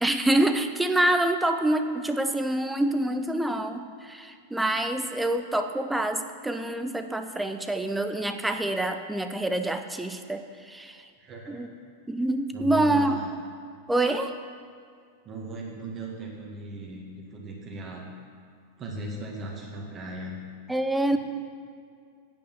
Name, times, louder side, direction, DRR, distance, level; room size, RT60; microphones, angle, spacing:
voice 1, 0.0-11.0 11.5-11.7 12.1-13.2 13.9-14.4 20.7-21.2, right 1 dB, 5° right, 8 dB, 0.6 m, -26 dB
voice 2, 11.2-11.6 12.5-13.3 15.3-18.1 18.8-20.4 21.1-21.2, right 1 dB, 30° right, -1 dB, 1.9 m, -38 dB
9.2 x 5.3 x 7.8 m, 2.2 s
figure-of-eight pair, 90°, 0 cm